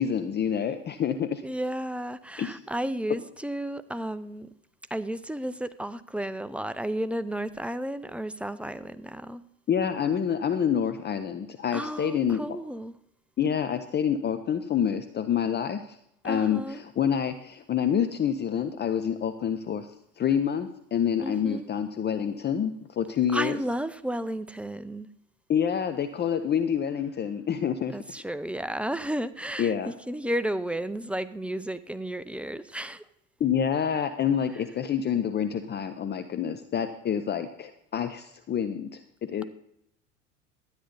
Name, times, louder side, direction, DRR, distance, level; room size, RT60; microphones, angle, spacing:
voice 1, 0.0-1.4 2.4-2.6 9.7-12.4 13.4-16.0 16.2-19.9 20.2-23.6 25.5-28.0 29.6-29.9 33.4-39.4, left 8 dB, 30° left, 0.7 m, -27 dB
voice 2, 1.4-4.5 4.9-9.4 11.7-12.9 16.2-16.8 21.2-21.7 23.3-25.1 27.9-29.7 30.1-33.0, right 1 dB, 5° right, 0.4 m, -32 dB
12.5 x 9.5 x 4.0 m
hypercardioid pair, 80°, 37 cm